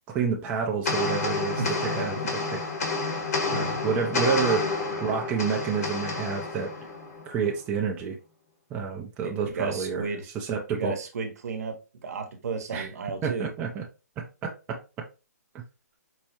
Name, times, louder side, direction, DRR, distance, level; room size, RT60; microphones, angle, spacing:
voice 1, 0.1-2.6 3.5-4.7 5.0-6.7 7.3-8.2 8.7-10.0 10.3-10.9 12.7-12.9 13.2-13.8 14.2-15.1 15.5-15.6, right 6 dB, 15° right, 0.3 m, -29 dB
sound 1, 0.9-7.5, left 3 dB, 65° left, 1.3 m, -29 dB
voice 2, 1.6-2.1 2.4-2.5 9.2-10.3 10.7-11.8 12.0-13.5, right 4 dB, 65° right, 0.8 m, -33 dB
4.5 x 2.0 x 2.8 m
hypercardioid pair, 150°, 9 cm